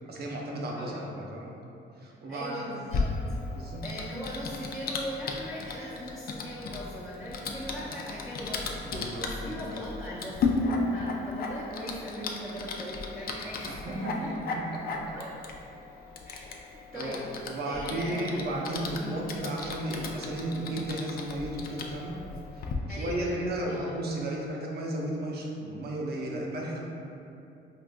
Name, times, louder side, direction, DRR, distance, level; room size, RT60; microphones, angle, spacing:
voice 1, 0.1-1.6 2.0-2.6 3.5-3.8 8.8-9.7 13.7-14.8 16.9-17.2 17.5-22.2 22.5-26.8, right 1 dB, 55° right, -2 dB, 0.6 m, -34 dB
voice 2, 2.0-3.4 3.8-8.8 9.3-14.3 15.1-15.3 16.2-16.5 16.9-17.2 17.6-18.5 19.0-19.3 22.9-23.9, equal, ahead, -10 dB, 0.6 m, -39 dB
Typing, 2.9-22.7, left 3 dB, 50° left, 0.4 m, -35 dB
4.7 x 2.5 x 2.2 m, 2.7 s
cardioid pair, 90°, 20 cm